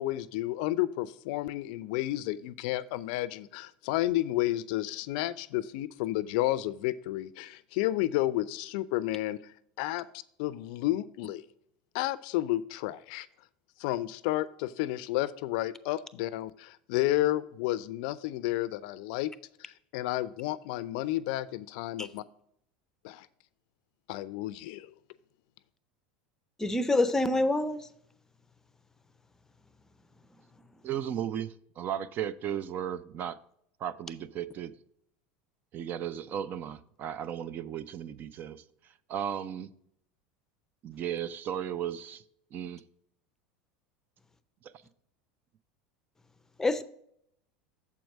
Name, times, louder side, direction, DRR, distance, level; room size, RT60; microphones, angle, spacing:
voice 1, 0.0-10.1 10.4-11.4 11.9-13.3 13.8-19.3 19.6-22.2 23.0-23.3 24.1-24.9, left 15 dB, 70° left, 0.4 m, -31 dB
voice 2, 26.6-27.9 46.6-46.8, left 2 dB, 10° left, 0.6 m, -26 dB
voice 3, 30.8-33.4 33.8-34.7 35.7-38.6 39.1-39.7 40.8-42.2 42.5-42.8 44.6-44.7, right 9 dB, 40° right, 0.5 m, -35 dB
7.2 x 4.6 x 6.4 m
supercardioid pair, 105°, 5 cm